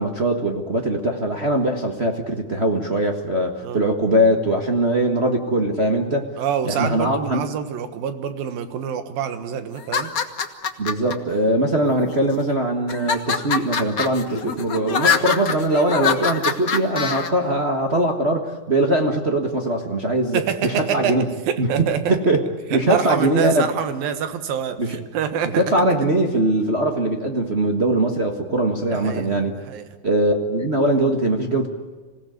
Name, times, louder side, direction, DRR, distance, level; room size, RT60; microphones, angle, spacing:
voice 1, 0.0-6.3 6.6-7.4 10.8-21.2 21.6-21.7 22.1-22.4 22.7-23.7 24.8-25.0 25.6-29.5 30.0-31.7, right 1 dB, 55° right, 2 dB, 0.7 m, -21 dB
voice 2, 6.4-10.1 20.3-21.2 21.4-22.2 22.7-25.6 28.9-29.9, right 8 dB, 85° right, 10 dB, 3.3 m, -26 dB
sound 1, 9.8-11.1 11.9-12.4 12.9-17.3, left 6 dB, 75° left, 0.8 m, -24 dB
26.5 x 17.5 x 9.4 m, 1.3 s
omnidirectional pair, 4.0 m